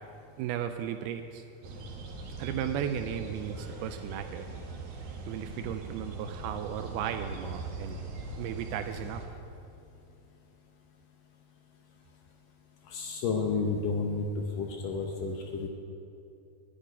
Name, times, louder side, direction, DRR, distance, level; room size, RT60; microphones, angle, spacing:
voice 1, 0.4-1.4 2.4-4.5 5.3-8.0 8.4-9.2, right 9 dB, 85° right, 8 dB, 2.2 m, -35 dB
sound 1, 1.6-9.3, right 2 dB, 65° right, 3.2 m, -41 dB
voice 2, 12.9-15.7, left 4 dB, 80° left, 2 dB, 1.9 m, -31 dB
10.5 x 8.7 x 9.5 m, 2.7 s
omnidirectional pair, 5.0 m